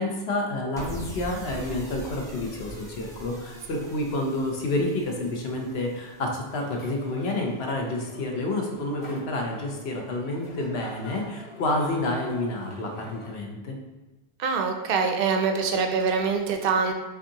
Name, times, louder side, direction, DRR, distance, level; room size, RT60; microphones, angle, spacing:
voice 1, 0.0-13.8, left 2 dB, 65° left, 1 dB, 1.0 m, -29 dB
sound 1, 0.8-7.1, equal, 5° left, 0.6 m, -42 dB
sound 2, 6.5-13.4, left 1 dB, 30° left, 0.8 m, -46 dB
voice 2, 14.4-16.9, right 5 dB, 60° right, 4 dB, 0.7 m, -24 dB
5.9 x 2.7 x 2.8 m, 1.1 s
omnidirectional pair, 1.1 m